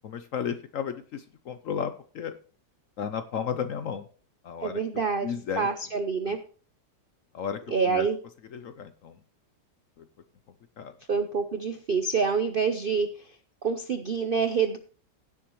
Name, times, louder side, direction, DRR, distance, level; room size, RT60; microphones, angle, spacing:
voice 1, 0.0-2.4 3.0-4.1 4.4-5.7 6.3-6.4 7.3-7.6 7.9-8.1 8.5-9.2 10.8-10.9, left 7 dB, 60° left, 10 dB, 0.9 m, -33 dB
voice 2, 4.6-6.4 7.7-8.2 11.1-13.3 13.6-14.8, right 5 dB, 55° right, 8 dB, 0.5 m, -27 dB
16.5 x 7.3 x 3.1 m, 0.39 s
omnidirectional pair, 1.9 m